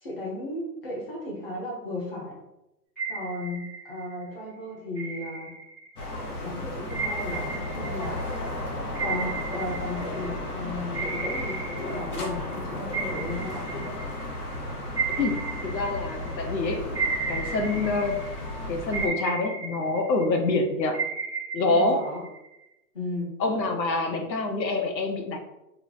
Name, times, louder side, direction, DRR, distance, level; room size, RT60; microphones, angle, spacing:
voice 1, 0.0-2.4 3.1-5.5 6.4-8.2 9.0-13.9 21.6-22.2 22.9-23.3, left 1 dB, 35° left, -3 dB, 1.0 m, -35 dB
sound 1, 3.0-4.2 4.9-6.1 6.9-10.5 10.9-12.6 12.9-16.5 16.9-18.5 18.9-20.5 20.9-22.6, right 4 dB, ahead, 0.6 m, -34 dB
sound 2, 6.0-19.1, left 1 dB, 60° left, 1.0 m, -34 dB
voice 2, 15.2-16.9 17.3-18.2 18.7-21.0 21.5-22.1 23.4-25.4, left 3 dB, 85° left, 5 dB, 0.9 m, -26 dB
3.3 x 2.1 x 3.9 m, 0.90 s
hypercardioid pair, 180°, 50 cm